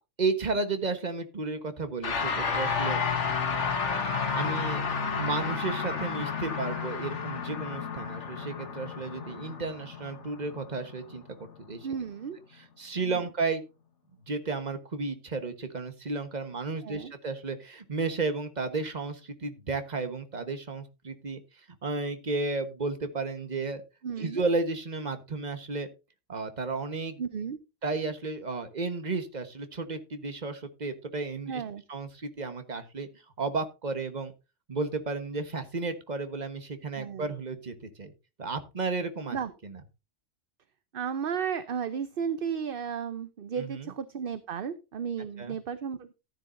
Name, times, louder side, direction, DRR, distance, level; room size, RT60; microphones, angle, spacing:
voice 1, 0.2-3.0 4.3-4.8 5.2-11.9 12.8-13.6 14.3-21.4 21.8-23.8 24.2-25.9 26.3-27.2 27.8-31.6 31.9-33.1 33.4-34.3 34.7-38.1 38.4-39.4 39.6-39.8 43.6-43.9 45.4-45.6, right 3 dB, 35° right, 9 dB, 1.4 m, -33 dB
sound 1, 2.0-11.5, left 5 dB, 65° left, 1.7 m, -31 dB
voice 2, 11.8-12.4 12.9-13.2 16.8-17.1 24.0-24.4 27.2-27.6 31.5-31.8 37.0-37.3 39.3-39.5 40.9-46.1, right 7 dB, 50° right, 12 dB, 0.9 m, -34 dB
14.5 x 10.0 x 2.6 m, 0.28 s
omnidirectional pair, 1.3 m